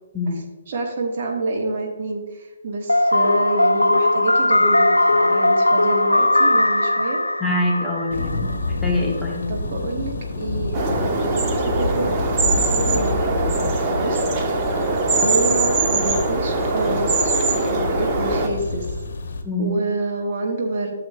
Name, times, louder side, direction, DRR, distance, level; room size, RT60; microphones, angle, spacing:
voice 1, 0.3-7.2 9.5-14.3 15.1-19.0 19.6-20.9, right 2 dB, 40° right, 1 dB, 1.3 m, -27 dB
sound 1, 2.9-8.7, left 1 dB, 80° left, 0.4 m, -18 dB
voice 2, 7.4-8.5 8.8-9.4 19.4-19.7, left 2 dB, 5° left, -4 dB, 1.3 m, -24 dB
Thunder, 8.1-19.4, left 2 dB, 55° left, 1.1 m, -28 dB
sound 2, 10.7-18.5, right 3 dB, 20° right, 1.0 m, -22 dB
12.0 x 7.0 x 2.2 m, 1.2 s
figure-of-eight pair, 135°, 0 cm